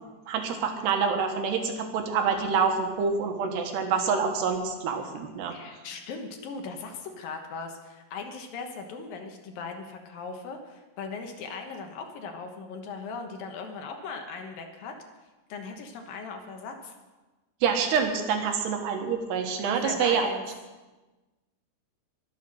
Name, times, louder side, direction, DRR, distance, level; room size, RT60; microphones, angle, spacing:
voice 1, 0.3-5.6 17.6-20.3, right 6 dB, 80° right, 4 dB, 3.5 m, -26 dB
voice 2, 5.5-14.9 15.5-17.0 19.6-20.4, left 4 dB, 70° left, 4 dB, 2.7 m, -38 dB
22.5 x 7.6 x 6.4 m, 1.2 s
omnidirectional pair, 4.7 m